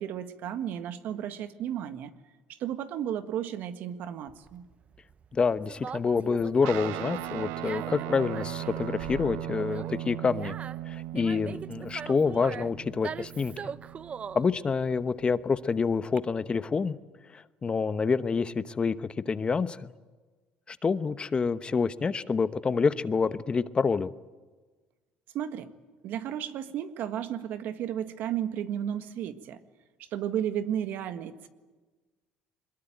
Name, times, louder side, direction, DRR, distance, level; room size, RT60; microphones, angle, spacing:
voice 1, 0.0-2.1 2.5-4.7 25.3-25.7 26.0-29.6 30.0-31.5, right 10 dB, 70° right, 9 dB, 1.7 m, -33 dB
Conversation, 4.3-16.2, right 6 dB, 40° right, 0.7 m, -42 dB
voice 2, 5.3-10.6 10.9-13.7 14.3-17.0 17.3-19.9 20.7-24.1, left 5 dB, 30° left, 13 dB, 1.0 m, -27 dB
Guitar, 6.6-15.4, right 15 dB, 85° right, 0.7 m, -38 dB
22.5 x 21.0 x 9.1 m, 1.3 s
supercardioid pair, 90°, 3 cm